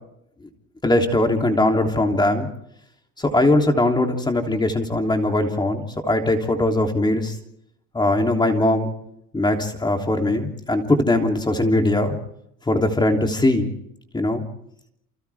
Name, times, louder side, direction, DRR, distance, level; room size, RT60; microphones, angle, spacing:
voice 1, 0.8-2.5 3.2-7.3 7.9-8.9 9.3-12.1 12.7-13.7 14.1-14.4, left 1 dB, 15° left, 3 dB, 3.2 m, -20 dB
30.0 x 28.5 x 3.6 m, 0.75 s
cardioid pair, 140°, 33 cm